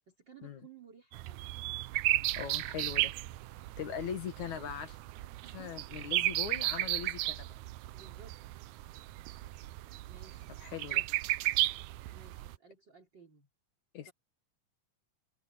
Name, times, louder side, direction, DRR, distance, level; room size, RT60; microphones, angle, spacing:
voice 1, 0.1-1.5 3.8-4.2 5.4-5.9 7.9-8.4 10.1-10.5 10.9-11.1 12.1-13.5 14.1-14.2, right 6 dB, 35° right, 3.7 m, -57 dB
sound 1, 1.1-12.6, right 17 dB, 80° right, 2.0 m, -34 dB
voice 2, 2.4-3.1 3.8-5.0 5.5-7.5 10.6-11.0 13.9-14.1, left 8 dB, 75° left, 3.2 m, -40 dB
open air
omnidirectional pair, 3.4 m